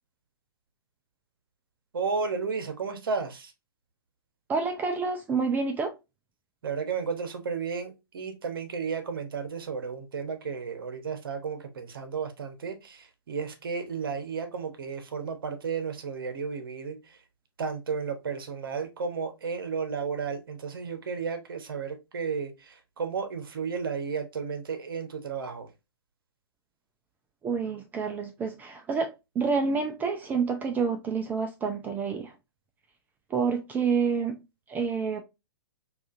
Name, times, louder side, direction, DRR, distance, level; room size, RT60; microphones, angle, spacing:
voice 1, 1.9-3.5 6.6-17.0 17.6-25.7, right 5 dB, 60° right, 1.0 m, -33 dB
voice 2, 4.5-5.9 27.4-32.3 33.3-34.4 34.7-35.2, right 5 dB, 15° right, 0.4 m, -28 dB
4.8 x 2.5 x 2.5 m
figure-of-eight pair, 115°, 13 cm